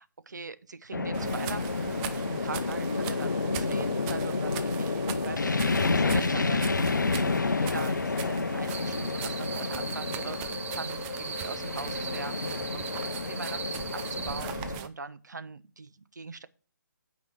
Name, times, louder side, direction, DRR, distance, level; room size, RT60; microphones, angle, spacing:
voice 1, 0.0-16.5, right 4 dB, 65° right, 13 dB, 1.0 m, -42 dB
sound 1, 0.9-14.8, left 3 dB, 70° left, 0.6 m, -30 dB
sound 2, 1.1-14.9, right 9 dB, 15° right, 0.5 m, -41 dB
sound 3, 8.7-14.4, right 6 dB, 40° right, 1.2 m, -39 dB
9.1 x 5.3 x 6.3 m, 0.38 s
figure-of-eight pair, 145°, 10 cm